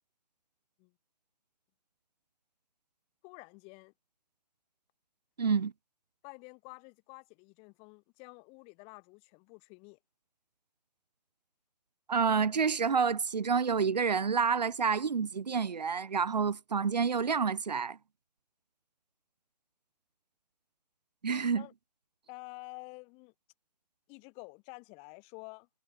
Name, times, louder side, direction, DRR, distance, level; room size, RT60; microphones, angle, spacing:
voice 1, 3.2-3.9 6.2-10.0 21.6-21.7 22.3-23.3 24.1-25.7, left 32 dB, 30° left, 3.4 m, -50 dB
voice 2, 5.4-5.7 12.1-18.0 21.2-21.6, right 6 dB, 90° right, 1.0 m, -28 dB
hypercardioid pair, 140°, 21 cm